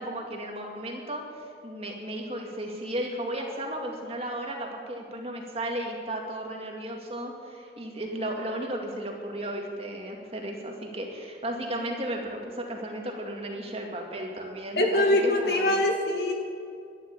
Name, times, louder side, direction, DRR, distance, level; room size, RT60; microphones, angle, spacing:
voice 1, 0.0-15.8, right 1 dB, 35° right, 1 dB, 2.2 m, -34 dB
voice 2, 14.8-16.3, left 1 dB, 65° left, 2 dB, 2.4 m, -23 dB
12.5 x 12.0 x 8.6 m, 2.5 s
head